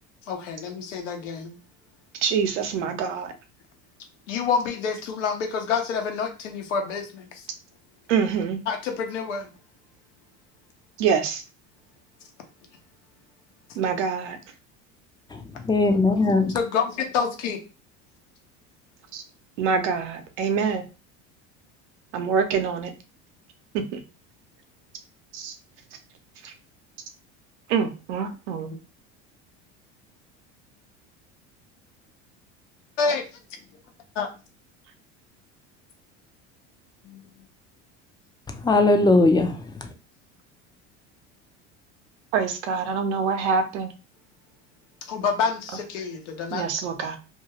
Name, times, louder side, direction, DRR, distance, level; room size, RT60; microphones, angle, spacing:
voice 1, 0.3-1.6 4.3-7.5 8.7-9.5 16.5-17.6 33.0-33.2 34.2-34.3 37.0-37.2 45.1-46.8, left 5 dB, 85° left, 0.8 m, -27 dB
voice 2, 2.2-3.3 8.1-8.6 11.0-11.4 13.8-14.4 19.1-19.2 19.6-20.8 22.1-22.9 23.9-24.0 25.3-25.5 27.7-28.7 42.3-43.9 46.5-47.2, right 6 dB, 80° right, 0.8 m, -25 dB
voice 3, 15.3-16.6 38.6-39.9, left 2 dB, 10° left, 0.4 m, -20 dB
2.5 x 2.3 x 3.0 m
hypercardioid pair, 85°, 35 cm